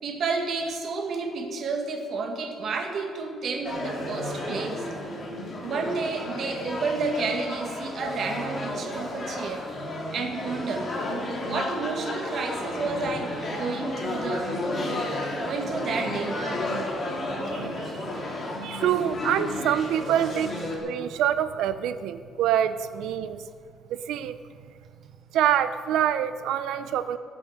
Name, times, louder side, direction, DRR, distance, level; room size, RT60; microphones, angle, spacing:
voice 1, 0.0-4.8 5.6-9.6 10.1-10.9 11.4-14.5 15.3-16.5 17.5-17.6, right 4 dB, 50° right, 3 dB, 1.7 m, -31 dB
sound 1, 3.6-20.8, left 1 dB, 30° left, 2.4 m, -32 dB
sound 2, 12.4-17.5, right 1 dB, 10° right, 2.1 m, -51 dB
voice 2, 17.5-18.0 18.6-20.5 20.8-23.4 23.9-24.4 25.3-27.2, right 10 dB, 90° right, 12 dB, 0.6 m, -26 dB
18.0 x 7.1 x 6.5 m, 2.1 s
cardioid pair, 150°, 0 cm